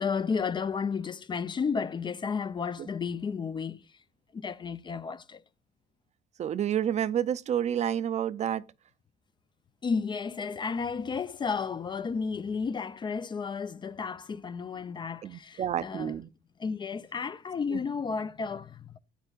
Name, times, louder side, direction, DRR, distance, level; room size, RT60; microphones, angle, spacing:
voice 1, 0.0-4.0 4.3-5.4 9.8-16.2 16.6-19.0, left 5 dB, 25° left, 0.4 m, -32 dB
voice 2, 6.4-8.6 15.2-16.3 17.7-17.8, right 10 dB, 40° right, 0.4 m, -29 dB
12.0 x 8.8 x 2.3 m
cardioid pair, 110°, 17 cm